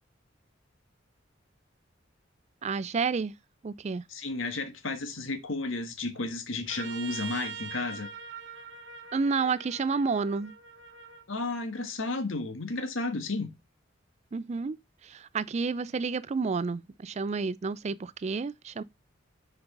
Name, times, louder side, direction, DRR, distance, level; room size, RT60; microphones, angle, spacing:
voice 1, 2.6-3.3 3.6-4.0 9.1-10.5 14.3-14.8 15.0-18.8, right 4 dB, 35° right, 0.4 m, -30 dB
voice 2, 4.1-8.1 11.3-13.5, left 3 dB, 80° left, 1.6 m, -33 dB
Trumpet, 6.7-11.2, right 5 dB, 65° right, 1.1 m, -43 dB
7.1 x 5.3 x 3.8 m
head